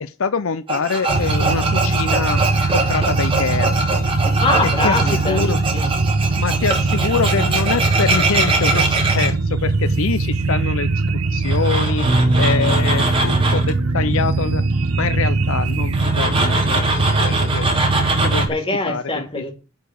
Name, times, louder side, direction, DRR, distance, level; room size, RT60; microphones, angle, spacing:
voice 1, 0.0-2.4 2.7-3.7 4.8-5.0 5.2-5.6 6.4-10.9 11.3-12.0 12.4-14.6 15.0-17.7 18.2-18.6 18.9-19.5, left 5 dB, 65° left, 0.6 m, -24 dB
Tools, 0.7-9.3 11.4-13.7 15.9-18.5, right 2 dB, 25° right, 2.7 m, -23 dB
sound 1, 1.1-18.5, right 3 dB, 90° right, 1.3 m, -21 dB
voice 2, 4.4-5.9 18.2-19.5, left 2 dB, 25° left, 2.9 m, -23 dB
Bass guitar, 12.0-18.3, right 1 dB, 60° right, 4.8 m, -26 dB
11.5 x 5.1 x 7.8 m
head